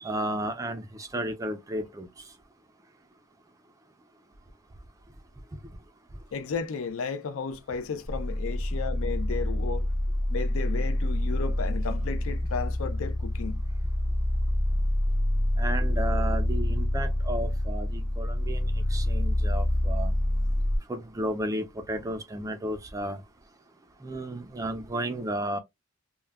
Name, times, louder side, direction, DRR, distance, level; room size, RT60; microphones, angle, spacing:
voice 1, 0.0-2.1 15.6-20.1 20.9-23.2 24.0-25.6, right 1 dB, 15° right, 0.3 m, -33 dB
voice 2, 6.3-9.9 10.3-13.6, left 5 dB, 60° left, 0.4 m, -34 dB
sound 1, 8.1-20.8, left 1 dB, 25° left, 0.8 m, -27 dB
2.3 x 2.1 x 3.4 m
head